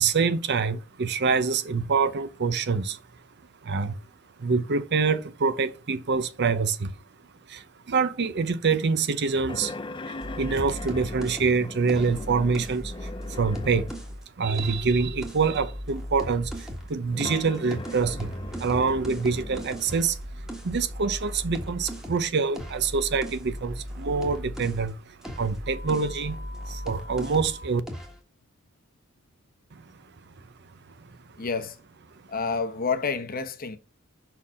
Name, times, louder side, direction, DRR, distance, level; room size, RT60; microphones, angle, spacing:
voice 1, 0.0-3.0 3.6-4.0 4.4-6.9 7.5-9.7 10.1-13.9 14.4-26.4 26.7-27.8 29.7-29.8, right 5 dB, 50° right, 0.7 m, -26 dB
sound 1, 9.5-14.1 14.8-14.9 17.0-19.7, left 3 dB, 25° left, 0.5 m, -40 dB
sound 2, 10.2-14.2 14.5-16.9 17.2-24.9 25.2-27.6 27.9-28.2, equal, ahead, 1.5 m, -37 dB
sound 3, 25.7-27.7, left 2 dB, 65° right, 1.6 m, -46 dB
voice 2, 31.4-31.8 32.3-33.8, left 5 dB, 40° left, 0.9 m, -29 dB
5.6 x 4.5 x 6.2 m
head